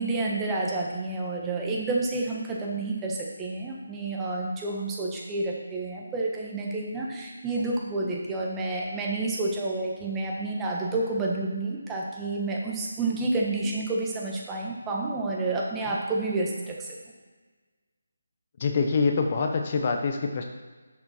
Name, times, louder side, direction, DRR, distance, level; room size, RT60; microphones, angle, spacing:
voice 1, 0.0-16.9, right 2 dB, 10° right, -2 dB, 1.2 m, -29 dB
voice 2, 18.6-20.4, left 4 dB, 35° left, 4 dB, 0.9 m, -25 dB
10.5 x 6.4 x 4.3 m, 1.4 s
figure-of-eight pair, 165°, 0 cm